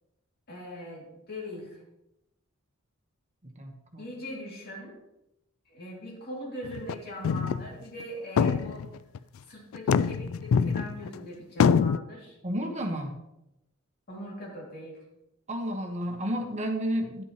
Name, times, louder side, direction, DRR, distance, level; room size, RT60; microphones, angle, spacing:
voice 1, 0.5-1.8 4.0-5.0 5.7-8.9 9.5-12.4 14.1-15.0, equal, 45° left, -3 dB, 2.5 m, -41 dB
voice 2, 3.4-4.1 12.4-13.2 15.5-17.2, equal, 30° right, 3 dB, 1.2 m, -32 dB
sound 1, 6.6-6.9 7.2-7.7 8.0-8.1 8.4-9.2 9.7-11.2 11.6-12.0, left 6 dB, 65° left, 0.3 m, -24 dB
11.0 x 7.9 x 3.0 m, 0.88 s
head